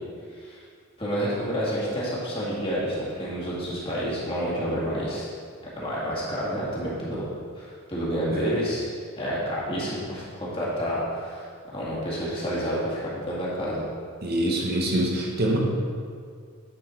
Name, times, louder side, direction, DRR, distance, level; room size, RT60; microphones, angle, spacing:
voice 1, 1.0-5.3 5.8-7.2 7.6-8.9 9.1-13.9, equal, 25° left, -7 dB, 1.9 m, -29 dB
voice 2, 14.2-15.6, right 1 dB, 50° right, -1 dB, 1.0 m, -25 dB
9.7 x 4.8 x 4.4 m, 2.1 s
head